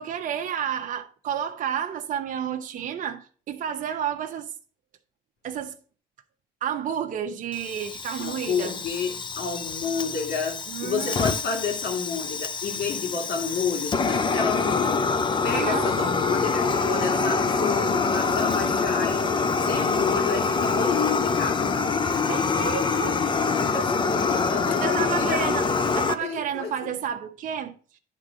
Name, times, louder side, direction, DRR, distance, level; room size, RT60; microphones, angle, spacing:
voice 1, 0.0-4.5 5.4-5.8 6.6-8.8 10.7-11.3 15.5-15.9 22.3-23.2 24.8-25.7 25.9-28.0, right 9 dB, 50° right, 0.8 m, -31 dB
Fire, 7.5-26.1, left 4 dB, 30° left, 0.6 m, -25 dB
voice 2, 8.2-15.1 15.4-19.2 19.6-21.8 23.6-25.5 25.9-26.9, left 5 dB, 65° left, 2.3 m, -30 dB
10.0 x 3.8 x 5.0 m
cardioid pair, 110°, 17 cm